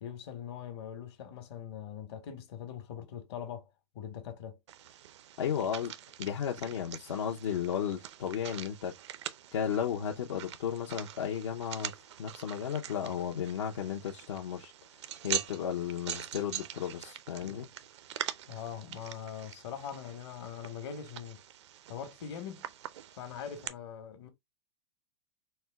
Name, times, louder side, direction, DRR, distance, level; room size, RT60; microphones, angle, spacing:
voice 1, 0.0-3.7 3.9-4.6 18.5-21.4 21.9-22.7 23.1-24.3, left 8 dB, 65° left, 1.2 m, -42 dB
sound 1, 4.7-23.7, right 11 dB, 75° right, 0.5 m, -44 dB
voice 2, 5.4-5.9 6.2-8.9 9.5-14.7 15.2-17.7, left 8 dB, 80° left, 0.7 m, -34 dB
4.3 x 2.2 x 3.4 m
hypercardioid pair, 130°, 15 cm